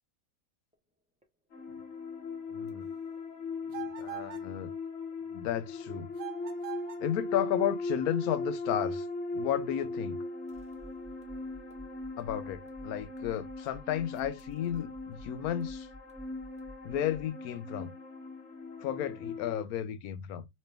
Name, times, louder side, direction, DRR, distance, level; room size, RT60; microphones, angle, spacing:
sound 1, 0.7-0.8 1.2-1.3 1.6-2.2 2.7-2.8 3.2-3.3 3.5-4.2 4.6-4.7 5.1-5.2 5.5-6.1 6.6-6.7 7.1-7.2 7.4-8.1 10.5-17.3, left 1 dB, 10° right, 0.4 m, -54 dB
sound 2, 1.5-19.6, left 2 dB, 55° left, 1.1 m, -39 dB
voice 1, 2.5-2.9 3.8-4.7 5.3-6.1 7.0-9.1 9.3-10.2 12.2-15.9 16.8-17.9 18.8-20.5, left 11 dB, 85° left, 1.1 m, -33 dB
sound 3, 3.7-4.5 6.1-7.1, right 13 dB, 55° right, 0.8 m, -43 dB
3.2 x 3.1 x 3.2 m
omnidirectional pair, 1.5 m